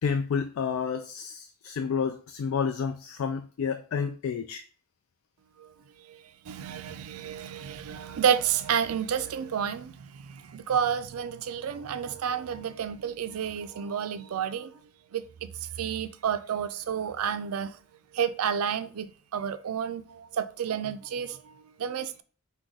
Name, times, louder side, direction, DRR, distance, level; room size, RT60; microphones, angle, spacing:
voice 1, 0.0-4.6, left 6 dB, 70° left, 0.3 m, -30 dB
voice 2, 6.5-14.7 15.1-17.8 18.1-22.2, right 8 dB, 80° right, 0.4 m, -30 dB
4.7 x 2.2 x 3.8 m
head